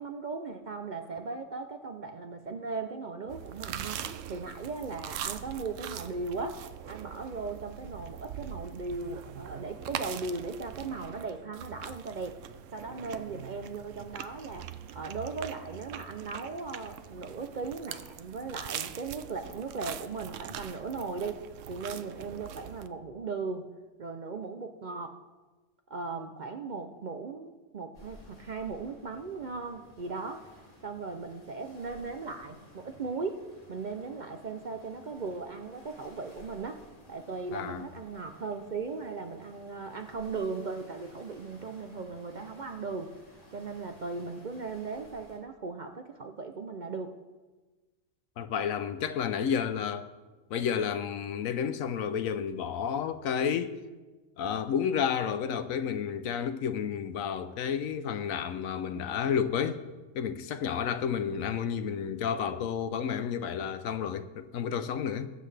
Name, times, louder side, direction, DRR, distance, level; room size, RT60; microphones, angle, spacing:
voice 1, 0.0-12.4 12.7-23.7 24.0-25.2 25.9-30.4 30.8-36.8 37.1-43.1 43.5-47.2, right 4 dB, 50° right, 0.5 m, -38 dB
sound 1, 3.3-22.9, right 10 dB, 70° right, 0.9 m, -42 dB
sound 2, 27.9-45.4, left 1 dB, 25° left, 2.2 m, -56 dB
voice 2, 37.5-37.9 48.4-50.1 50.5-53.8 54.4-59.8 60.1-65.3, left 7 dB, 80° left, 1.1 m, -31 dB
21.0 x 7.7 x 3.3 m
omnidirectional pair, 1.4 m